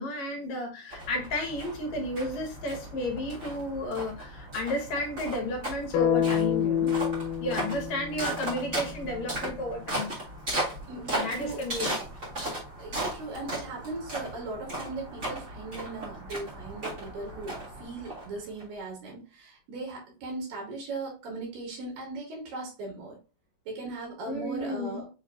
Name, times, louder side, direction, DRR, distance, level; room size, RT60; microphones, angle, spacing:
voice 1, 0.0-6.9 7.4-10.1 11.1-11.9 24.3-25.0, left 1 dB, 60° left, 2.3 m, -32 dB
sound 1, 0.9-18.6, right 1 dB, 30° right, 1.6 m, -37 dB
sound 2, 5.9-10.0, left 9 dB, 80° left, 2.3 m, -29 dB
voice 2, 10.9-11.6 12.8-23.2 23.7-25.1, right 3 dB, 80° right, 3.8 m, -38 dB
6.9 x 3.0 x 2.4 m
omnidirectional pair, 4.0 m